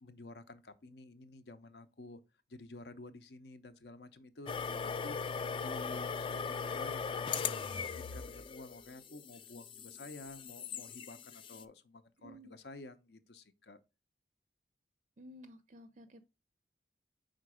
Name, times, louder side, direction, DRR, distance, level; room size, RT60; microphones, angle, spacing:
voice 1, 0.0-2.2 2.5-5.2 5.6-13.8, left 2 dB, 65° left, 0.7 m, -51 dB
sound 1, 4.5-11.6, left 6 dB, 30° left, 0.3 m, -39 dB
voice 2, 12.2-12.5 15.2-16.3, equal, 40° right, 0.4 m, -54 dB
5.1 x 3.8 x 4.8 m
head